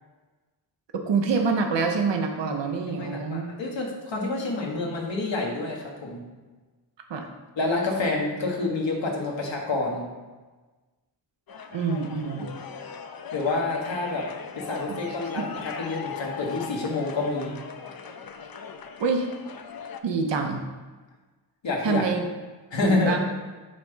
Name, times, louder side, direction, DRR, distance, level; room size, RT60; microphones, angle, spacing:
voice 1, 0.9-3.5 7.1-7.3 11.7-12.5 14.9-15.0 15.4-15.5 19.0-19.3 20.0-20.6 21.8-22.2 22.8-23.2, right 4 dB, 75° right, 3 dB, 0.8 m, -26 dB
voice 2, 2.9-6.2 7.6-10.1 12.4-12.5 13.3-14.3 14.5-17.6 21.6-22.0 22.7-23.2, left 3 dB, 90° left, -1 dB, 1.5 m, -28 dB
sound 1, 11.5-20.0, left 6 dB, 55° left, 0.6 m, -39 dB
7.5 x 3.4 x 5.4 m, 1.3 s
wide cardioid pair, 90°, 43 cm